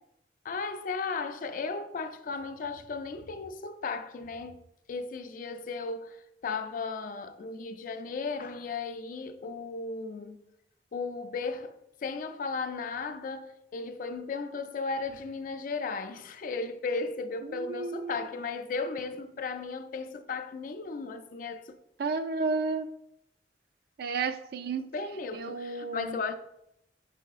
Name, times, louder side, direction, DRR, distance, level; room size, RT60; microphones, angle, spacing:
voice 1, 0.4-4.6 4.9-10.4 10.9-21.7 24.9-26.3, left 4 dB, 50° left, 0.3 m, -35 dB
voice 2, 17.4-18.3 22.0-22.9 24.0-24.9 25.3-26.2, right 4 dB, 55° right, 0.3 m, -32 dB
5.6 x 3.9 x 2.3 m
head